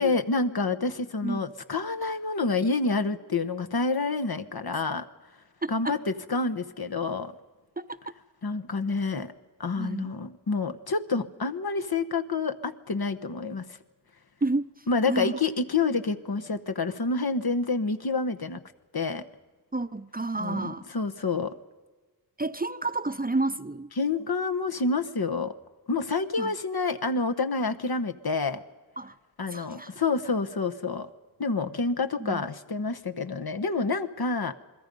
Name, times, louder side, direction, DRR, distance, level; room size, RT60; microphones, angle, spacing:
voice 1, 0.0-5.0 5.7-7.3 8.4-9.3 9.6-13.7 14.9-18.6 18.9-19.2 20.4-21.5 24.0-25.5 25.9-28.6 29.4-31.1 31.4-34.5, left 4 dB, 65° left, 7 dB, 1.1 m, -28 dB
voice 2, 5.6-6.0 7.8-8.0 9.8-10.1 14.4-14.7 15.1-15.4 19.7-20.9 22.4-23.9 26.4-26.5 29.0-29.1 29.5-29.9 32.2-32.4, right 2 dB, 20° right, 12 dB, 0.6 m, -30 dB
28.0 x 21.0 x 5.3 m, 1.3 s
wide cardioid pair, 65°, 40 cm